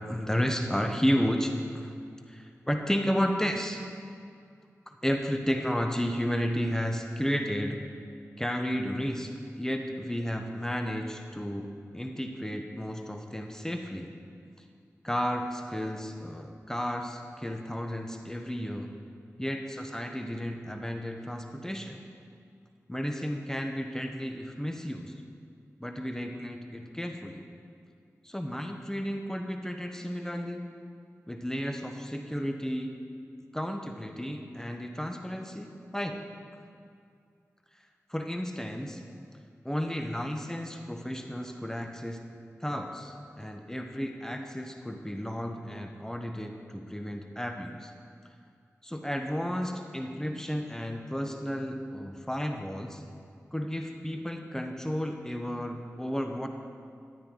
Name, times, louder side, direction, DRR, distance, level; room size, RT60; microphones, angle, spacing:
voice 1, 0.1-1.9 2.3-3.9 4.9-7.9 8.4-14.2 15.0-18.9 19.4-22.0 22.9-25.1 25.8-27.4 28.2-30.6 31.3-33.0 33.5-36.2 38.1-39.0 39.6-42.3 42.6-47.9 48.8-53.0 53.5-56.5, equal, 10° left, 4 dB, 1.0 m, -32 dB
12.5 x 8.7 x 3.8 m, 2.3 s
cardioid pair, 40°, 6 cm